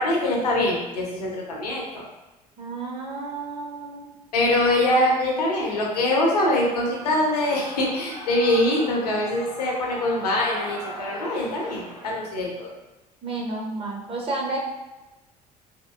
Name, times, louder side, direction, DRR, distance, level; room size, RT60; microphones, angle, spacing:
voice 1, 0.0-2.0 4.3-12.7, left 1 dB, 70° left, -2 dB, 0.7 m, -23 dB
voice 2, 2.6-4.1 4.7-4.8 13.2-14.6, right 3 dB, 30° right, -2 dB, 0.6 m, -31 dB
Shout / Cheering, 6.7-12.1, equal, 75° right, 1.0 m, -39 dB
3.6 x 2.6 x 2.2 m, 1.1 s
figure-of-eight pair, 60°, 21 cm